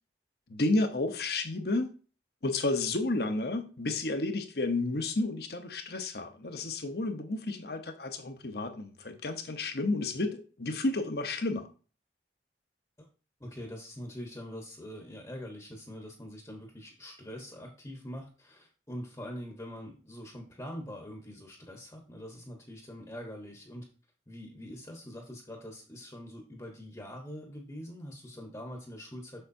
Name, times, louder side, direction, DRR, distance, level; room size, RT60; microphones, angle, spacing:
voice 1, 0.5-1.9 2.4-11.7, left 2 dB, 65° left, 1.0 m, -31 dB
voice 2, 13.4-23.9 24.3-29.5, equal, 20° left, 1.1 m, -44 dB
6.7 x 6.4 x 2.7 m
head